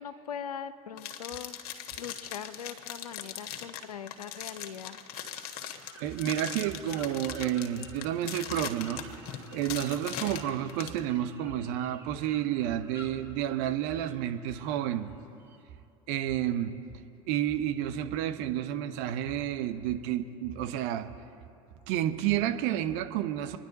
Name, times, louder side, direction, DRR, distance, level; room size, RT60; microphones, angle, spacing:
voice 1, 0.0-1.6 2.0-5.0, left 8 dB, 85° left, 12 dB, 0.7 m, -41 dB
sound 1, 1.0-11.0, left 9 dB, 55° left, 1.5 m, -40 dB
sound 2, 5.3-15.6, right 1 dB, 10° right, 2.8 m, -53 dB
voice 2, 6.0-9.0 9.5-15.1 16.1-16.7 17.3-21.1 21.9-23.6, right 11 dB, 60° right, 8 dB, 1.0 m, -30 dB
25.5 x 10.5 x 4.1 m, 2.7 s
hypercardioid pair, 75°, 19 cm